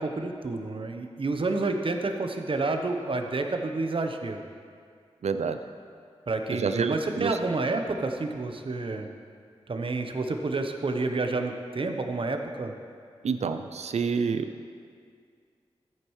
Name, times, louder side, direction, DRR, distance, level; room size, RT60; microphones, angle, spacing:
voice 1, 0.0-4.4 6.3-9.1 9.7-12.7, right 3 dB, 55° right, 5 dB, 0.9 m, -29 dB
voice 2, 5.2-5.6 6.5-7.4 13.2-14.7, right 5 dB, 90° right, 9 dB, 0.5 m, -28 dB
13.5 x 9.0 x 3.2 m, 2.2 s
cardioid pair, 55°, 11 cm